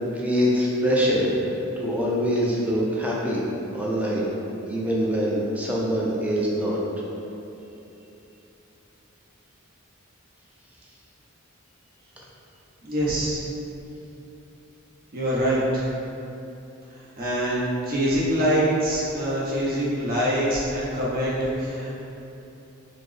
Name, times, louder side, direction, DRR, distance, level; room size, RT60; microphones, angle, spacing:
voice 1, 0.1-1.5 1.8-3.4 3.7-4.3 4.7-6.8, equal, 5° right, -5 dB, 0.4 m, -24 dB
voice 2, 12.8-13.4 15.1-15.9 17.2-21.9, equal, 45° right, -7 dB, 0.8 m, -24 dB
4.1 x 2.0 x 3.2 m, 3.0 s
head